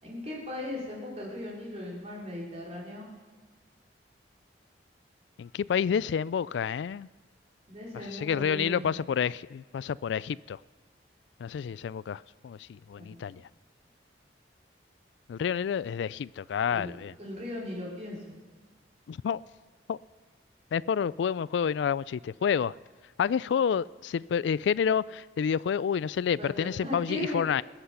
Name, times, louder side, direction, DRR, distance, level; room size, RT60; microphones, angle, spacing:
voice 1, 0.0-3.1 7.7-9.0 13.0-13.2 16.7-16.9 17.2-18.4 26.4-27.4, left 1 dB, 35° right, 3.8 m, -38 dB
voice 2, 5.4-7.1 7.9-10.6 11.4-13.4 15.3-17.1 19.1-19.4 19.9-20.0 20.7-22.7 23.2-27.6, left 7 dB, 75° left, 0.3 m, -29 dB
20.0 x 8.0 x 5.7 m
head